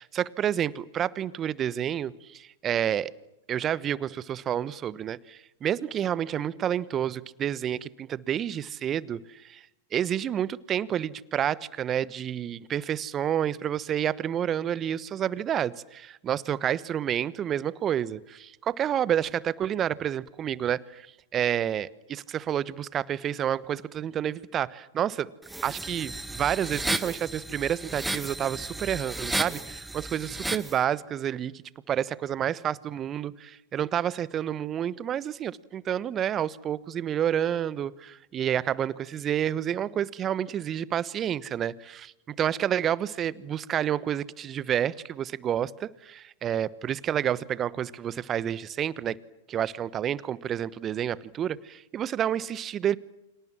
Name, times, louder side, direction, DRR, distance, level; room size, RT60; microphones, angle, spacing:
voice 1, 0.0-3.1 3.5-9.6 9.9-21.1 21.3-25.3 25.6-31.5 31.9-49.2 49.5-53.0, right 10 dB, 30° right, 19 dB, 1.1 m, -29 dB
sound 1, 25.5-30.8, right 2 dB, 5° right, 1.3 m, -33 dB
29.5 x 26.5 x 7.5 m, 0.90 s
figure-of-eight pair, 100°, 0 cm